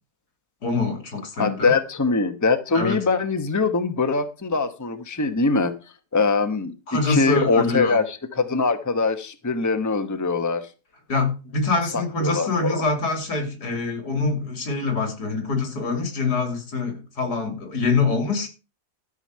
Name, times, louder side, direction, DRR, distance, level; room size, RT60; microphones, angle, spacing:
voice 1, 0.6-1.7 2.7-3.0 6.9-8.0 11.1-18.5, left 3 dB, 85° left, 3.5 m, -25 dB
voice 2, 1.4-5.7 6.1-6.7 7.1-10.7 11.9-12.8, left 4 dB, 15° left, 1.0 m, -22 dB
13.5 x 5.2 x 7.6 m
omnidirectional pair, 1.7 m